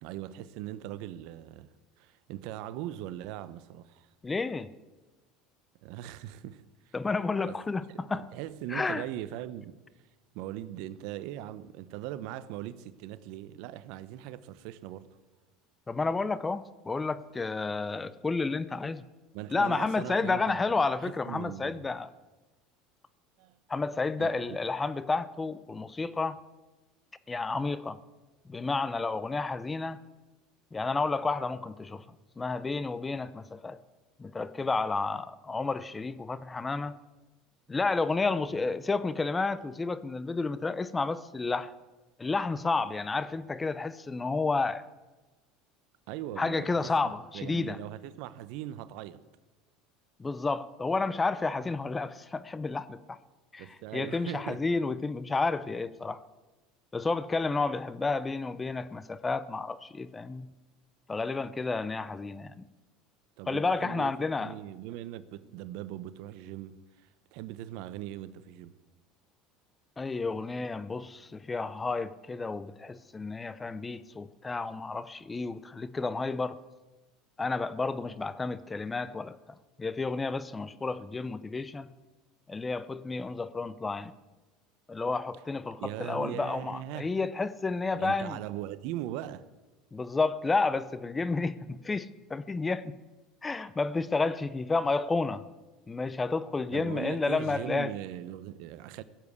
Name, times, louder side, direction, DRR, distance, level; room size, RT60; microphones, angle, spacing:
voice 1, 0.0-1.7 2.0-4.1 5.8-6.9 7.5-7.6 7.9-9.8 10.3-15.1 19.3-21.8 23.4-23.6 24.2-24.6 46.1-46.9 47.3-49.2 53.6-54.6 63.4-64.1 64.4-66.8 67.3-68.7 85.8-87.1 87.9-89.5 96.7-99.0, right 13 dB, 70° right, 0.7 m, -40 dB
voice 2, 4.2-4.7 6.9-8.3 8.7-9.0 15.9-19.0 19.5-22.1 23.7-26.4 27.3-28.0 28.4-30.0 30.7-32.0 32.4-33.8 34.2-37.0 37.7-41.7 42.2-44.8 46.4-47.8 50.2-53.2 53.5-56.2 56.9-60.5 61.1-62.6 63.5-64.6 70.0-76.6 77.4-79.4 79.8-81.9 82.5-84.1 84.9-88.4 89.9-92.9 93.4-95.4 95.9-97.9, left 3 dB, 20° left, 0.7 m, -31 dB
16.0 x 7.4 x 8.3 m
supercardioid pair, 100°, 0 cm